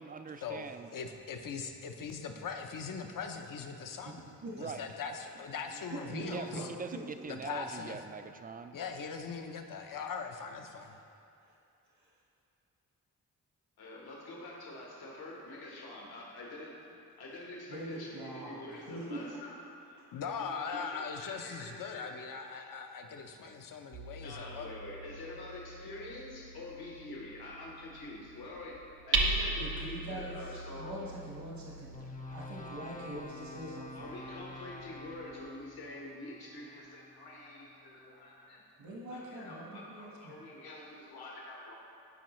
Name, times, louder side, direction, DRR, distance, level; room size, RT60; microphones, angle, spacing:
voice 1, 0.0-0.9 4.6-4.8 5.7-5.8 6.3-8.8, right 5 dB, 25° right, 9 dB, 0.4 m, -43 dB
voice 2, 0.9-4.2 4.6-6.7 7.3-8.0 8.7-11.0 20.1-24.7, left 5 dB, 55° left, 5 dB, 0.7 m, -40 dB
voice 3, 4.0-4.6 5.2-5.3 5.9-6.8 17.7-19.4 20.7-20.8 29.6-32.0 32.3-34.1 38.8-40.3, right 1 dB, 65° right, -4 dB, 1.5 m, -43 dB
voice 4, 13.8-16.8 17.2-20.0 20.6-22.2 24.2-31.1 32.2-32.4 33.9-38.6 39.1-41.8, left 2 dB, 75° left, -3 dB, 1.4 m, -46 dB
Hammer, 23.9-35.6, right 3 dB, 80° right, 0.9 m, -39 dB
sound 1, 31.9-38.2, left 2 dB, 20° left, 0.7 m, -49 dB
12.0 x 4.7 x 3.1 m, 2.7 s
cardioid pair, 55°, 38 cm